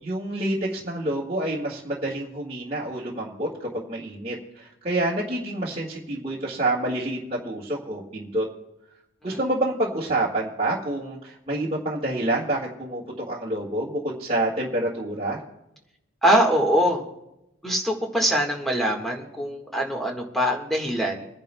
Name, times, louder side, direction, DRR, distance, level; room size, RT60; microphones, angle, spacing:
voice 1, 0.0-8.5 9.2-15.4, right 1 dB, 30° right, -6 dB, 1.8 m, -28 dB
voice 2, 16.2-17.0 17.6-21.3, equal, ahead, 0 dB, 1.5 m, -23 dB
29.5 x 10.5 x 2.3 m, 0.88 s
head